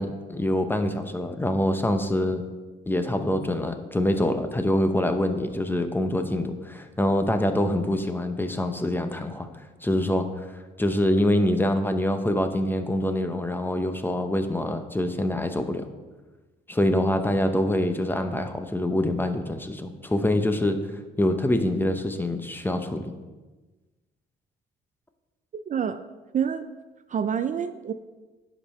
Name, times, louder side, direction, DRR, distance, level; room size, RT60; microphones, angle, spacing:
voice 1, 0.0-2.4 2.9-9.5 9.8-15.8 16.7-20.8 21.2-23.1, left 1 dB, 10° left, 7 dB, 0.8 m, -25 dB
voice 2, 25.5-26.0 26.3-26.7 27.1-27.9, right 8 dB, 40° right, 10 dB, 0.4 m, -27 dB
10.5 x 5.1 x 4.3 m, 1.2 s
cardioid pair, 90°, 20 cm